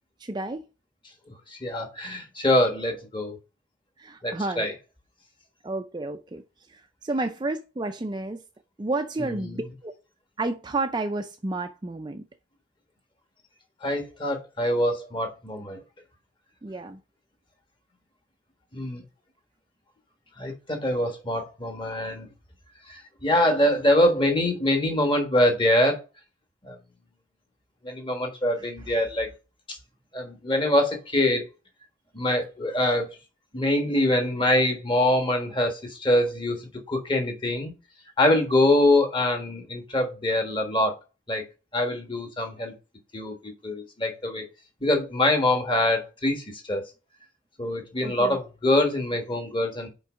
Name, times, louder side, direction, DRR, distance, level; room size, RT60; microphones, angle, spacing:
voice 1, 0.2-0.7 4.0-4.7 5.6-6.4 6.7-8.4 8.8-9.9 10.4-12.2 16.6-17.0 28.6-28.7 48.0-48.4, right 2 dB, 20° right, 0.4 m, -31 dB
voice 2, 1.5-3.4 4.2-4.7 9.2-9.6 13.8-15.8 18.7-19.0 20.4-22.3 22.9-26.0 26.6-26.8 27.8-29.3 29.7-29.8 30.1-31.5 32.1-33.1 33.5-36.6 36.9-37.7 38.2-40.9 41.3-41.4 41.7-42.7 43.1-44.5 44.8-46.9 47.6-49.9, left 1 dB, 25° left, 1.4 m, -24 dB
5.6 x 4.6 x 5.1 m
head